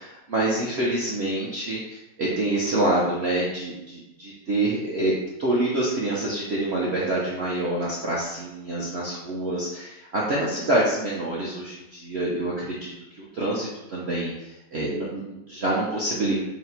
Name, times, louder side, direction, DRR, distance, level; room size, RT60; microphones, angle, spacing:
voice 1, 0.0-5.1 5.4-12.9 13.2-16.3, right 1 dB, 80° right, -6 dB, 0.5 m, -26 dB
4.1 x 2.1 x 4.1 m, 0.96 s
omnidirectional pair, 2.0 m